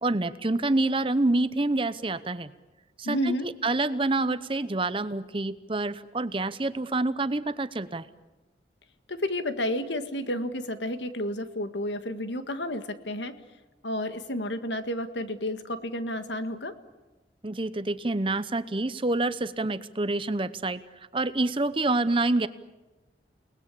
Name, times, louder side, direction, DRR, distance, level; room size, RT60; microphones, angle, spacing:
voice 1, 0.0-2.5 3.0-8.1 17.4-20.8 21.1-22.5, right 2 dB, 30° right, 13 dB, 0.8 m, -27 dB
voice 2, 3.0-3.5 9.1-13.4 13.8-16.8, left 1 dB, 85° left, 9 dB, 1.8 m, -31 dB
29.5 x 19.5 x 8.4 m, 1.1 s
head